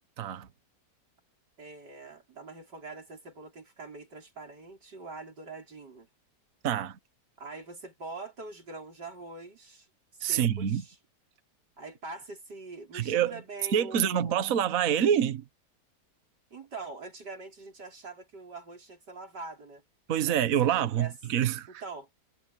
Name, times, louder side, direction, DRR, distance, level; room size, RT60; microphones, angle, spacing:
voice 1, 0.2-0.5 6.6-7.0 10.2-10.8 12.9-13.4 13.7-15.4 20.1-21.8, right 9 dB, 55° right, 1.5 m, -26 dB
voice 2, 1.6-6.1 7.4-9.9 10.1-11.0 11.8-14.4 16.5-19.8 20.2-21.1 21.8-22.1, right 3 dB, 80° right, 5.7 m, -44 dB
omnidirectional pair, 1.8 m